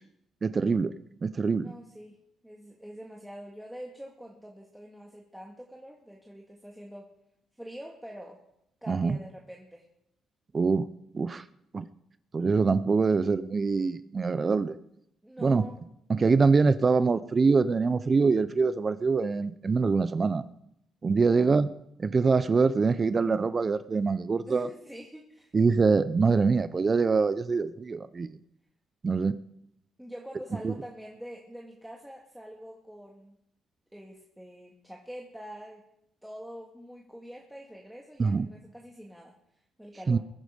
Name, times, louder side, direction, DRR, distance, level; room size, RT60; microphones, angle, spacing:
voice 1, 0.4-0.9 1.2-1.7 8.9-9.2 10.5-10.9 11.1-11.4 11.7-11.8 12.3-14.8 15.4-15.6 16.1-20.4 21.0-21.7 22.0-24.7 25.5-28.4 29.0-29.4 30.6-30.7 38.2-38.5 40.1-40.2, right 4 dB, 35° right, 15 dB, 0.6 m, -24 dB
voice 2, 1.6-7.1 7.6-8.4 8.8-9.9 15.2-15.8 21.3-21.5 24.5-25.5 30.0-33.4 33.9-35.8 36.2-39.3 39.8-40.2, equal, 5° right, -1 dB, 2.2 m, -45 dB
22.0 x 9.3 x 5.2 m, 0.78 s
cardioid pair, 90°, 0 cm